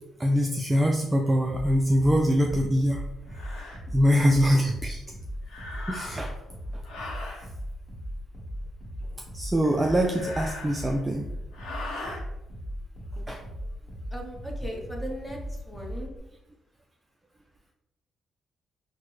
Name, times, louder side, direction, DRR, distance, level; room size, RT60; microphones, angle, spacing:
voice 1, 0.2-3.0 3.9-5.0 5.9-6.3 9.3-11.3 13.3-13.4, equal, 15° right, 1 dB, 0.3 m, -23 dB
sound 1, 1.4-16.2, equal, 30° left, 1.1 m, -38 dB
sound 2, 2.4-2.5 3.3-3.8 5.4-6.4 6.8-7.5 9.6-11.1 11.5-12.2, left 2 dB, 75° left, 0.7 m, -40 dB
voice 2, 14.1-15.4 15.7-16.1, right 1 dB, 5° left, -1 dB, 0.8 m, -37 dB
3.5 x 2.1 x 3.1 m, 0.93 s
cardioid pair, 90°, 0 cm